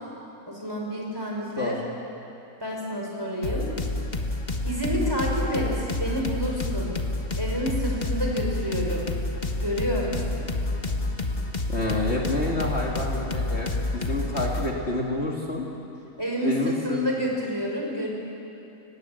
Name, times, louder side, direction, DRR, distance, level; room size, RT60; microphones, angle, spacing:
voice 1, 0.5-1.8 2.6-3.7 4.6-7.0 7.3-9.1 9.6-10.5 16.2-18.1, equal, 15° right, -2 dB, 5.2 m, -29 dB
sound 1, 3.4-14.7, left 2 dB, 30° left, 1.5 m, -29 dB
voice 2, 11.7-15.7 16.4-17.0, left 2 dB, 45° left, -2 dB, 2.4 m, -28 dB
29.5 x 18.5 x 7.8 m, 2.8 s
omnidirectional pair, 1.6 m